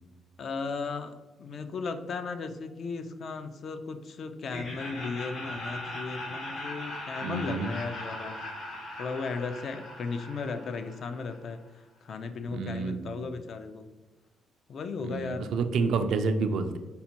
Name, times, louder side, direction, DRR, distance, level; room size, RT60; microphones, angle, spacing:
voice 1, 0.4-8.4 9.0-11.6 12.0-13.9 14.7-15.5, left 4 dB, 55° left, 8 dB, 0.3 m, -36 dB
Laughter, 4.5-11.4, left 1 dB, 80° left, 1.3 m, -39 dB
voice 2, 7.2-7.7 12.5-13.3 15.0-16.8, right 4 dB, 75° right, 7 dB, 0.3 m, -29 dB
5.3 x 2.1 x 2.8 m, 1.2 s
cardioid pair, 90°, 0 cm